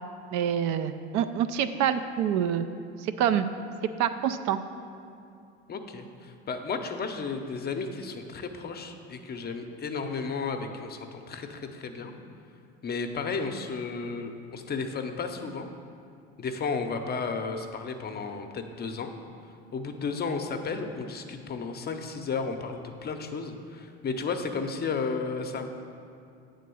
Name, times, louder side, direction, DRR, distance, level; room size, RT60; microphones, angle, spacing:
voice 1, 0.3-2.7 3.0-3.5 4.0-4.6, right 9 dB, 60° right, 10 dB, 0.5 m, -26 dB
voice 2, 5.7-12.1 12.8-15.7 16.4-19.1 19.7-25.7, left 4 dB, 30° left, 6 dB, 0.7 m, -33 dB
8.2 x 3.8 x 6.9 m, 2.5 s
supercardioid pair, 85°, 32 cm